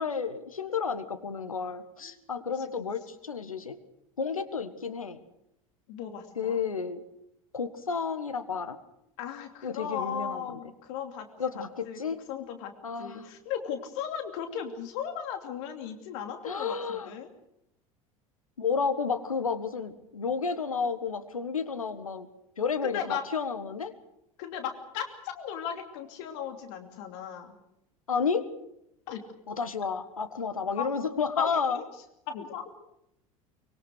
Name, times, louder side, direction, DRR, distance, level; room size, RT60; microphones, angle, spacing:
voice 1, 0.0-3.8 4.2-5.2 6.3-7.0 7.5-8.8 9.6-10.6 11.4-12.2 12.8-13.3 16.4-17.1 18.6-22.3 22.6-23.9 28.1-28.5 29.5-31.8, left 5 dB, 80° left, 11 dB, 1.6 m, -31 dB
voice 2, 5.9-6.6 9.2-11.3 11.5-12.0 12.3-12.7 13.0-17.3 22.8-23.2 24.4-27.6 29.1-29.2 30.8-30.9 31.4-31.8 32.3-32.7, left 8 dB, 55° left, 6 dB, 2.8 m, -36 dB
24.0 x 22.5 x 6.5 m, 0.80 s
figure-of-eight pair, 70°, 18 cm